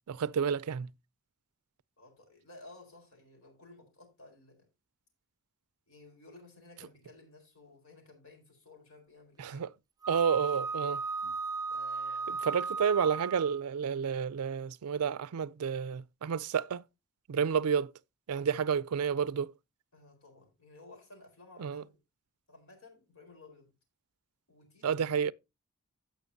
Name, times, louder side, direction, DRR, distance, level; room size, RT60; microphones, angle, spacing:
voice 1, 0.1-0.9 9.4-9.7 10.1-11.3 12.3-16.8 17.3-17.9 18.3-19.5 21.6-21.8 24.8-25.3, right 7 dB, 85° right, 0.4 m, -30 dB
voice 2, 2.0-4.7 5.9-9.7 11.7-12.5 19.9-22.0 22.5-23.7 24.5-25.1, left 2 dB, 65° left, 4.0 m, -55 dB
Wind instrument woodwind instrument, 10.0-13.6, right 4 dB, 15° right, 0.4 m, -35 dB
16.5 x 5.8 x 2.7 m
head